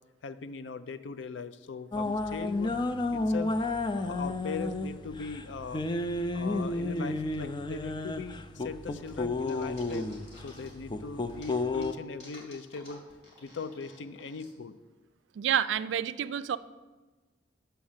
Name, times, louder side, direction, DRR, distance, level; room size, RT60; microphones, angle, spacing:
voice 1, 0.2-2.8 3.1-3.6 3.9-5.8 6.3-10.1 10.4-13.0 13.4-14.7, left 4 dB, 80° left, 12 dB, 0.5 m, -40 dB
sound 1, 1.9-11.9, left 2 dB, 25° left, 0.4 m, -32 dB
sound 2, 9.0-10.9 11.3-14.5, left 1 dB, 60° left, 3.1 m, -53 dB
voice 2, 15.4-16.6, right 9 dB, 80° right, 15 dB, 0.3 m, -28 dB
6.3 x 5.7 x 7.2 m, 1.2 s
head